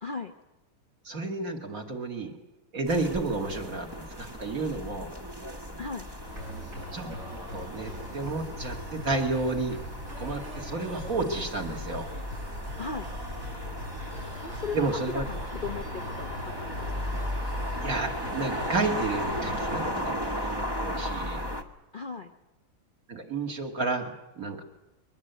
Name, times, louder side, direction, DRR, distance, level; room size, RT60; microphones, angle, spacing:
voice 1, 0.0-0.3 5.8-6.1 12.8-13.1 14.4-14.9 15.1-17.2 21.9-22.3, left 4 dB, 80° left, 5 dB, 0.4 m, -37 dB
voice 2, 1.0-2.3 2.7-5.1 6.9-7.1 7.5-9.8 10.2-12.1 14.7-15.3 17.7-21.4 23.1-24.6, right 3 dB, 40° right, 3 dB, 2.6 m, -31 dB
sound 1, 2.8-21.6, equal, 15° right, 1.0 m, -36 dB
sound 2, 6.2-19.9, left 1 dB, 60° right, 8.8 m, -42 dB
22.5 x 20.0 x 8.2 m, 0.96 s
omnidirectional pair, 2.4 m